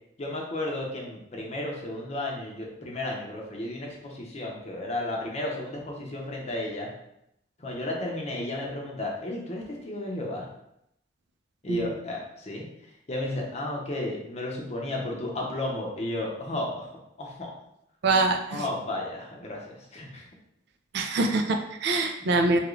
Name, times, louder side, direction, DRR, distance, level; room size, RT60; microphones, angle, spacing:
voice 1, 0.2-6.9 7.6-10.5 11.6-12.6 13.1-16.9 17.2-17.5 18.5-20.3, left 1 dB, 35° left, -1 dB, 0.7 m, -33 dB
voice 2, 18.0-18.6 20.9-22.6, right 3 dB, 65° right, 4 dB, 0.4 m, -24 dB
2.9 x 2.4 x 3.0 m, 0.78 s
head